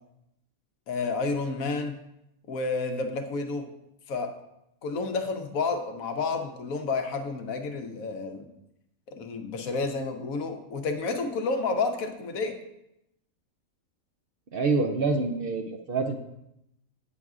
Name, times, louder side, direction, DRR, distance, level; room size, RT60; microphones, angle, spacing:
voice 1, 0.9-2.0 2.5-3.7 4.1-4.3 4.8-8.5 9.1-12.6, left 4 dB, 80° left, 6 dB, 1.2 m, -30 dB
voice 2, 14.5-16.2, right 3 dB, 60° right, 4 dB, 0.6 m, -26 dB
8.9 x 6.3 x 2.4 m, 0.83 s
omnidirectional pair, 1.4 m